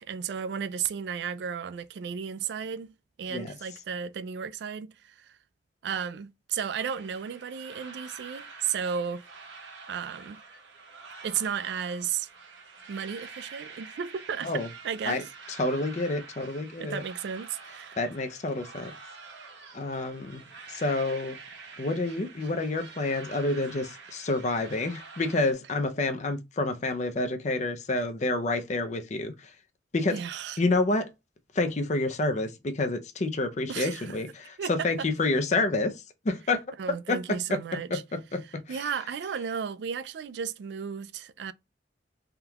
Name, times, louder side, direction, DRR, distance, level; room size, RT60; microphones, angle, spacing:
voice 1, 0.0-2.9 3.2-5.4 5.8-9.3 9.9-10.4 11.2-12.3 12.9-14.5 14.8-15.2 16.8-18.0 30.1-30.6 33.7-34.2 34.6-35.1 36.8-38.0 38.7-41.5, right 7 dB, 65° right, 0.3 m, -34 dB
sound 1, 6.8-25.5, right 4 dB, 85° right, 0.9 m, -47 dB
voice 2, 15.6-17.0 18.0-18.9 19.7-20.4 20.7-21.4 21.8-29.5 29.9-30.2 30.6-31.1 31.5-36.6 37.1-37.6 37.9-38.8, left 2 dB, 40° left, 0.5 m, -28 dB
3.5 x 2.3 x 2.8 m
head